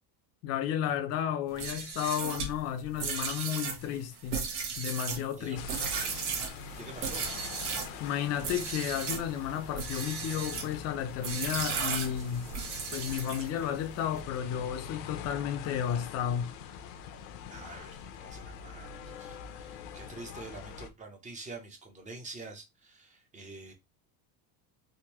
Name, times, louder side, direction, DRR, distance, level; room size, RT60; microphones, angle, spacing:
voice 1, 0.4-4.4 4.8-5.6 7.7-12.5 12.9-16.5, left 9 dB, 35° left, 0.5 m, -33 dB
sound 1, 1.5-7.9 8.4-9.3 9.7-10.7 11.2-13.6, right 5 dB, 70° right, 1.3 m, -35 dB
sound 2, 5.5-20.9, left 6 dB, 85° left, 0.7 m, -44 dB
voice 2, 6.7-7.3 17.5-23.7, right 3 dB, 15° right, 0.6 m, -46 dB
3.6 x 2.6 x 2.9 m
cardioid pair, 155°, 46 cm